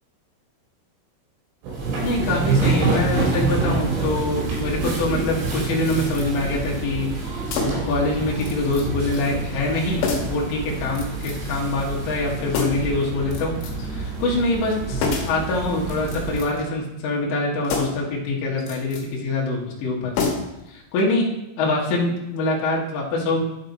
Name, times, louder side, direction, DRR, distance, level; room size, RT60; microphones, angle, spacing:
sound 1, 1.6-16.4, right 3 dB, 75° right, 4.7 m, -27 dB
voice 1, 2.0-7.4 7.9-13.5 13.8-20.3 20.7-21.3 21.6-23.4, left 2 dB, 65° left, -3 dB, 2.3 m, -24 dB
sound 2, 5.9-6.3 7.5-8.0 8.4-8.9 9.1-9.3 10.0-10.4 11.0-11.5 12.5-13.0 13.3-13.9 15.0-15.4 16.0-16.7 17.6-18.1 18.6-19.1 20.1-20.7 21.0-21.1, left 4 dB, 90° left, 3.5 m, -28 dB
11.0 x 4.8 x 4.0 m, 0.89 s
omnidirectional pair, 5.3 m